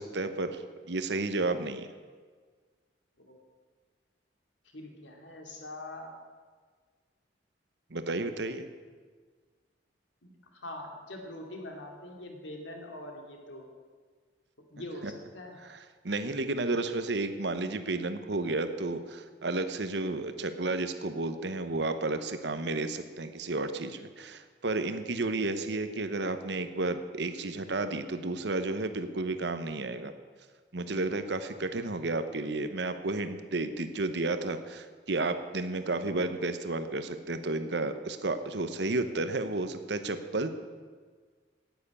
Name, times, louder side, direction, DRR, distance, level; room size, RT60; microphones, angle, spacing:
voice 1, 0.0-1.9 7.9-8.7 15.6-30.1 30.7-40.5, right 2 dB, 70° right, 10 dB, 0.9 m, -32 dB
voice 2, 4.7-6.1 10.2-13.7 14.7-15.6, left 1 dB, 80° left, 2 dB, 2.7 m, -43 dB
10.0 x 9.3 x 9.8 m, 1.5 s
head